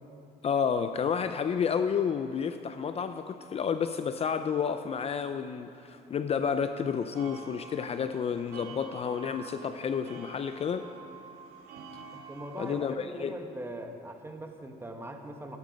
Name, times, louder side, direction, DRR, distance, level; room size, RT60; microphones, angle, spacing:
voice 1, 0.4-10.9 12.6-13.3, left 7 dB, 35° left, 9 dB, 0.5 m, -30 dB
sound 1, 7.2-12.9, right 4 dB, 70° right, 1.9 m, -48 dB
voice 2, 12.3-15.6, right 1 dB, 15° right, 4 dB, 1.3 m, -41 dB
12.5 x 12.0 x 5.3 m, 2.8 s
cardioid pair, 110°, 17 cm